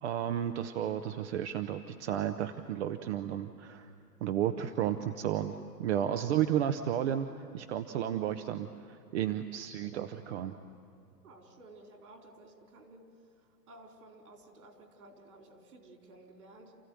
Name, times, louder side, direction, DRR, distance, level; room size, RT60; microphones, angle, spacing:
voice 1, 0.0-3.9 4.2-7.3 7.5-10.6, right 10 dB, 45° right, 8 dB, 0.9 m, -32 dB
voice 2, 11.2-13.1 13.7-16.8, right 2 dB, 65° right, 3 dB, 4.5 m, -54 dB
28.5 x 14.5 x 9.6 m, 2.5 s
hypercardioid pair, 125°, 48 cm